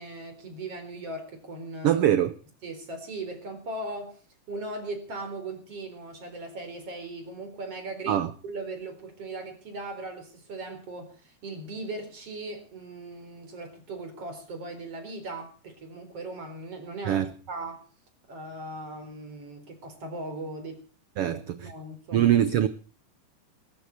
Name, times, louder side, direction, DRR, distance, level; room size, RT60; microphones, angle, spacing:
voice 1, 0.0-2.0 2.6-4.2 4.5-17.8 18.3-20.8 21.2-22.3, right 2 dB, 45° right, 5.2 m, -38 dB
voice 2, 1.8-2.3 8.1-8.3 17.0-17.3 21.2-21.6 22.1-22.7, right 11 dB, 70° right, 1.4 m, -22 dB
22.5 x 13.5 x 4.5 m
omnidirectional pair, 3.7 m